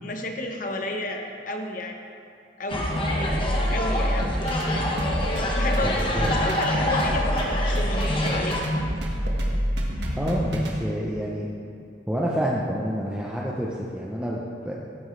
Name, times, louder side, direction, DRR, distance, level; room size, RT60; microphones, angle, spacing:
voice 1, 0.0-2.0 2.6-2.9 3.5-4.4 5.3-8.6, left 1 dB, 50° left, 3 dB, 1.1 m, -32 dB
sound 1, 2.7-8.6, left 1 dB, 30° left, 1.4 m, -28 dB
sound 2, 2.7-10.8, equal, 80° right, 1.5 m, -26 dB
voice 2, 5.8-6.4 10.1-11.5 12.1-14.7, equal, 5° right, -4 dB, 0.8 m, -28 dB
15.0 x 8.9 x 3.3 m, 2.4 s
head